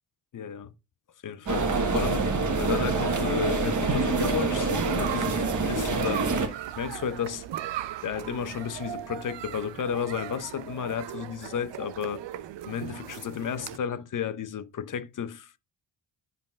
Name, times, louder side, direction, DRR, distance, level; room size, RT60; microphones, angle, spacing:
voice 1, 0.3-0.7 1.2-7.4 8.0-12.2 12.6-15.6, left 7 dB, 40° left, 0.7 m, -33 dB
sound 1, 1.5-7.1, left 3 dB, 75° left, 2.7 m, -46 dB
sound 2, 1.5-6.5, right 3 dB, 35° right, 1.3 m, -26 dB
sound 3, 4.8-13.8, right 12 dB, 60° right, 0.6 m, -38 dB
10.0 x 5.2 x 2.3 m
hypercardioid pair, 45°, 50 cm